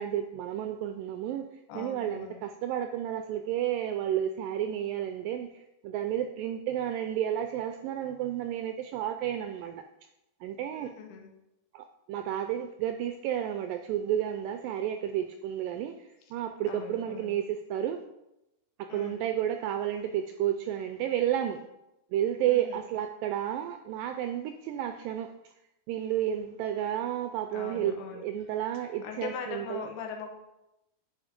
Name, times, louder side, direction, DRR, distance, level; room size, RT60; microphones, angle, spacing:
voice 1, 0.0-1.5 1.8-9.8 10.4-10.9 11.7-18.0 18.9-21.6 22.1-25.3 25.9-27.9 28.2-29.9, right 10 dB, 85° right, 7 dB, 2.0 m, -31 dB
voice 2, 1.7-2.4 10.7-11.3 16.6-17.4 18.9-19.3 22.5-22.9 27.5-28.3 29.0-30.3, left 5 dB, 85° left, 3 dB, 3.1 m, -41 dB
10.5 x 4.9 x 5.1 m, 0.92 s
omnidirectional pair, 4.4 m